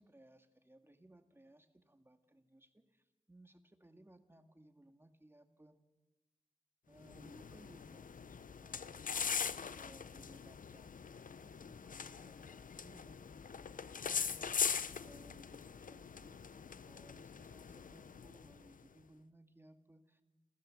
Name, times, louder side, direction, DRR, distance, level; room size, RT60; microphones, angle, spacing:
voice 1, 0.0-5.8 6.9-20.2, right 1 dB, 15° right, 8 dB, 2.0 m, -63 dB
sound 1, 7.0-18.8, left 6 dB, 80° left, 0.7 m, -42 dB
28.0 x 15.5 x 7.7 m, 1.1 s
wide cardioid pair, 70°, 14 cm